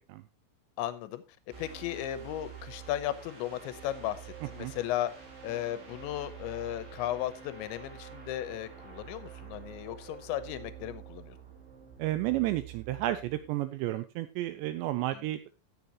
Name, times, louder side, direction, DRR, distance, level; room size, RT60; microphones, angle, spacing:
voice 1, 0.8-1.2 1.6-5.1 5.4-11.4 15.1-15.3, left 13 dB, 80° left, 13 dB, 3.0 m, -35 dB
sound 1, 1.5-13.5, right 9 dB, 65° right, 6.2 m, -48 dB
voice 2, 12.0-15.6, right 15 dB, 85° right, 11 dB, 2.6 m, -32 dB
17.5 x 7.1 x 2.9 m, 0.29 s
omnidirectional pair, 5.7 m